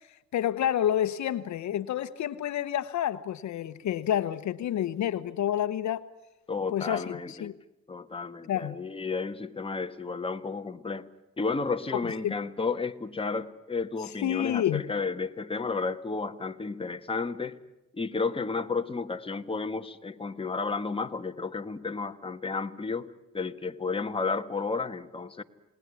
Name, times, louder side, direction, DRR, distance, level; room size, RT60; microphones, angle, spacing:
voice 1, 0.3-6.0 6.7-7.5 8.5-8.7 12.2-12.3 14.2-14.8, left 11 dB, 65° left, 13 dB, 1.0 m, -29 dB
voice 2, 6.5-7.5 7.9-11.1 11.4-17.6 17.9-25.4, left 4 dB, 20° left, 6 dB, 1.5 m, -32 dB
29.0 x 19.5 x 9.8 m, 1.0 s
cardioid pair, 90°, 30 cm